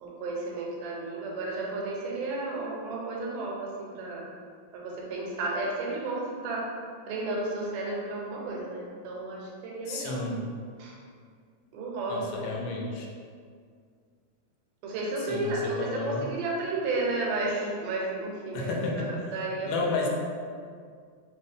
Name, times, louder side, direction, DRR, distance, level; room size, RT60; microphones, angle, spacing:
voice 1, 0.0-4.3 4.7-6.7 7.1-10.2 10.8-11.0 11.7-12.5 14.8-19.9, right 2 dB, 80° right, -3 dB, 2.2 m, -33 dB
voice 2, 9.9-10.5 12.1-13.1 15.3-16.3 18.5-19.3 19.7-20.1, left 3 dB, 85° left, -1 dB, 2.2 m, -31 dB
5.2 x 2.7 x 3.3 m, 2.1 s
omnidirectional pair, 3.8 m